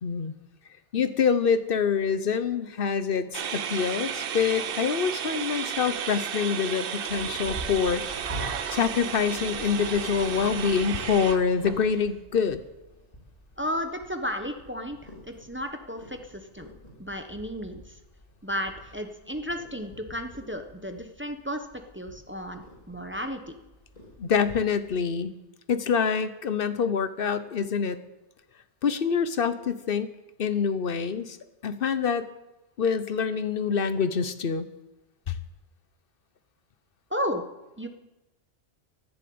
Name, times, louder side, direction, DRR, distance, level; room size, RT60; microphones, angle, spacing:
voice 1, 0.0-0.4 0.9-8.3 8.7-12.6 24.2-25.3 25.7-28.0 28.8-30.1 30.4-31.4 31.6-32.3 32.8-34.7 35.3-35.4, left 6 dB, 55° left, 12 dB, 1.0 m, -26 dB
sound 1, 3.3-11.9, right 8 dB, 60° right, 0.8 m, -33 dB
Purr, 7.1-25.0, left 1 dB, 35° left, 3.0 m, -45 dB
voice 2, 13.6-16.7 17.0-18.0 18.4-21.7 21.9-23.5 37.1-37.4 37.8-37.9, equal, 10° right, 6 dB, 1.0 m, -33 dB
11.0 x 10.5 x 8.7 m, 1.0 s
omnidirectional pair, 1.2 m